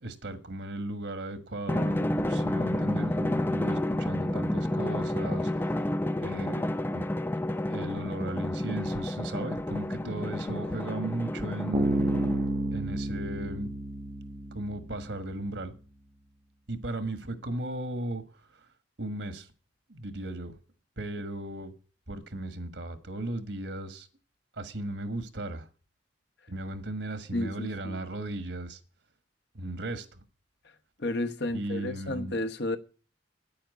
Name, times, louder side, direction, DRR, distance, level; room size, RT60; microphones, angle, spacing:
voice 1, 0.0-5.7 6.2-7.0 7.7-11.9 12.7-13.7 14.5-15.7 16.7-18.2 18.5-18.6 19.0-19.5 19.9-20.5 21.0-21.7 22.1-24.1 24.5-25.7 26.5-28.8 29.5-30.2 31.5-32.4, right 1 dB, 65° right, 1.5 m, -36 dB
Drum, 1.7-12.7, left 1 dB, 10° left, 0.5 m, -30 dB
Bass guitar, 11.7-15.2, right 1 dB, 35° right, 0.9 m, -30 dB
voice 2, 27.3-28.0 31.0-32.8, left 1 dB, 60° left, 1.2 m, -32 dB
10.0 x 8.7 x 8.3 m
head